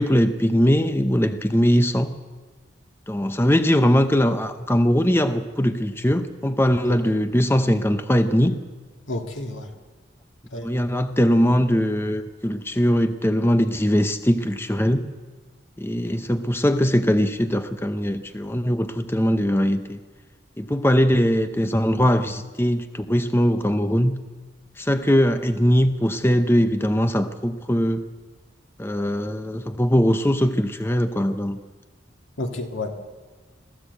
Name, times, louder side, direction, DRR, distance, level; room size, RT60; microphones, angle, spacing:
voice 1, 0.0-2.1 3.1-8.5 10.6-15.1 15.8-20.0 20.6-24.2 24.8-28.1 28.8-31.6, equal, 10° left, 9 dB, 0.7 m, -21 dB
voice 2, 9.1-9.7 10.5-10.8 32.4-32.9, left 2 dB, 85° left, 4 dB, 2.0 m, -30 dB
21.5 x 15.0 x 8.0 m, 1.4 s
head